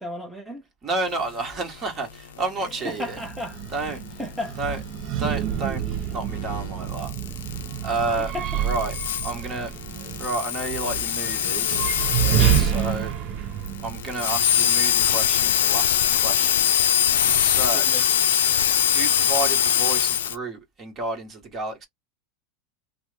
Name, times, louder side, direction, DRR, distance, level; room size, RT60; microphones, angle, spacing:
voice 1, 0.0-0.6 2.6-3.6 4.2-4.6 8.3-8.5 17.7-18.0, left 1 dB, 5° right, 0.8 m, -33 dB
voice 2, 0.8-3.2 3.7-4.2 4.6-4.8 5.2-7.1 7.8-9.0 9.2-9.7 10.2-11.8 12.5-13.1 13.8-16.7 17.3-17.9 18.9-21.9, right 2 dB, 35° right, 1.2 m, -31 dB
sound 1, 2.7-13.0 13.4-13.5 13.7-20.3, left 9 dB, 85° left, 0.4 m, -23 dB
sound 2, 3.1-15.2, right 10 dB, 50° right, 0.4 m, -28 dB
3.0 x 2.0 x 3.2 m
hypercardioid pair, 110°, 0 cm